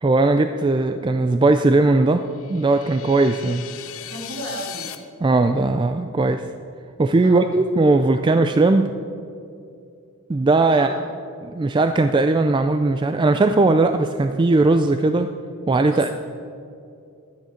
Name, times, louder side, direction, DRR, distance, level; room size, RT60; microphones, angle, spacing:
voice 1, 0.0-2.2 2.5-3.6 5.2-6.4 7.0-8.9 10.3-11.0 11.4-15.3 15.7-16.1, right 2 dB, 20° right, 8 dB, 0.3 m, -18 dB
sound 1, 2.2-5.0, left 11 dB, 70° left, 0.8 m, -38 dB
voice 2, 4.0-4.9 7.2-7.6 10.7-11.0 15.8-16.1, right 1 dB, 60° right, -1 dB, 2.6 m, -34 dB
12.5 x 9.4 x 5.1 m, 2.5 s
head